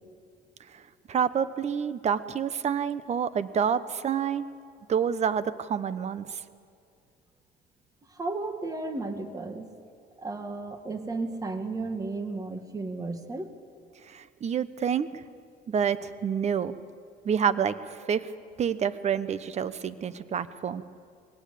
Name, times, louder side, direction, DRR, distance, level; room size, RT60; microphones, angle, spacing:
voice 1, 1.1-4.4 4.9-6.3 14.1-15.1 15.7-16.7 17.2-18.3 18.6-20.8, right 7 dB, 40° right, 14 dB, 1.0 m, -28 dB
voice 2, 8.2-9.7 10.2-13.5, right 3 dB, 20° right, 7 dB, 1.8 m, -34 dB
22.5 x 18.0 x 8.5 m, 2.4 s
cardioid pair, 110°, 17 cm